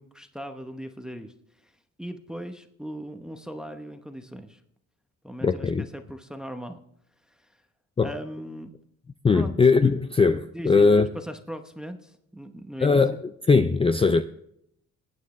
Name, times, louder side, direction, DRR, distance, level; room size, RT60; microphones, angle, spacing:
voice 1, 0.0-1.3 1.6-1.7 2.0-4.6 5.2-6.8 7.3-7.6 8.0-8.7 9.3-9.5 9.8-9.9 10.5-13.0, equal, ahead, 0.9 m, -38 dB
voice 2, 5.4-5.8 8.0-8.1 9.2-11.1 12.8-13.2 13.5-14.2, left 4 dB, 20° left, 0.5 m, -20 dB
19.5 x 9.2 x 3.2 m
cardioid pair, 90°, 30 cm